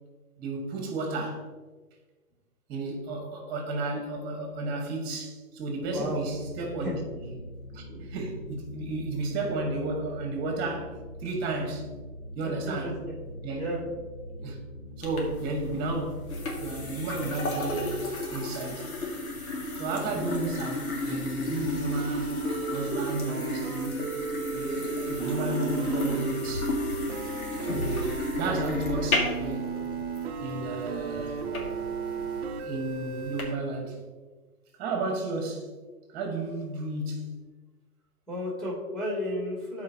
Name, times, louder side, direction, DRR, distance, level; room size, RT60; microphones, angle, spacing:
voice 1, 0.4-1.4 2.7-10.9 11.2-11.9 12.3-12.9 13.4-13.6 14.4-14.6 15.0-16.3 16.6-18.0 18.3-18.9 19.7-22.4 22.7-24.1 24.5-26.7 27.6-29.7 30.4-31.4 32.6-34.0 34.8-35.7 36.1-37.4, right 2 dB, 20° right, 1.8 m, -33 dB
sound 1, 5.8-17.9, equal, 25° left, 2.7 m, -43 dB
voice 2, 12.4-13.1 13.6-13.8 38.3-39.8, left 1 dB, ahead, 2.7 m, -33 dB
sound 2, 15.0-33.4, left 2 dB, 65° left, 2.1 m, -34 dB
sound 3, 21.7-33.6, right 6 dB, 45° right, 0.8 m, -35 dB
13.5 x 4.9 x 2.9 m
hypercardioid pair, 140°, 45 cm